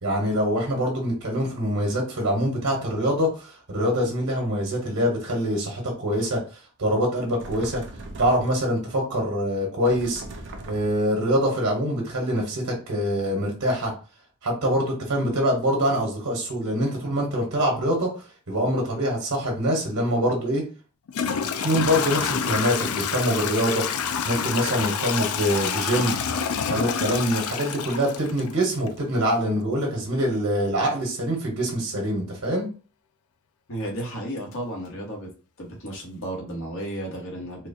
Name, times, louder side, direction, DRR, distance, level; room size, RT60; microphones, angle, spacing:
voice 1, 0.0-7.8 8.2-10.2 10.7-13.9 14.4-18.1 18.5-20.6 21.4-23.8 24.2-26.2 26.7-32.7, equal, 90° right, -1 dB, 1.4 m, -24 dB
sound 1, 7.4-8.7 9.9-11.1, right 2 dB, 55° right, 0.6 m, -39 dB
Toilet flush / Trickle dribble, 20.3-20.4 21.1-28.9, left 7 dB, 80° left, 0.4 m, -27 dB
voice 2, 33.7-35.3 35.6-37.7, right 1 dB, 65° left, -1 dB, 1.4 m, -33 dB
4.3 x 2.4 x 2.7 m, 0.36 s
head